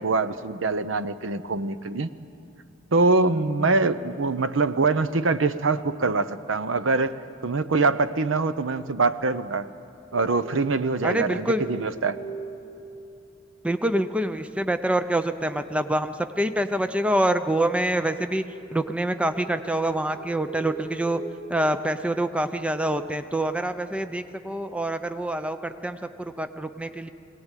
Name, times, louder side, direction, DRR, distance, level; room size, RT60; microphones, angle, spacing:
voice 1, 0.0-2.1 2.9-7.1 7.4-9.7 10.1-12.2, right 3 dB, 70° right, 12 dB, 0.7 m, -24 dB
sound 1, 10.1-13.8 18.2-22.7, right 3 dB, 10° left, 3.3 m, -43 dB
voice 2, 11.0-11.6 13.6-18.4 18.7-21.2 21.5-27.1, right 1 dB, 5° right, 9 dB, 0.5 m, -26 dB
22.0 x 17.5 x 9.1 m, 2.8 s
head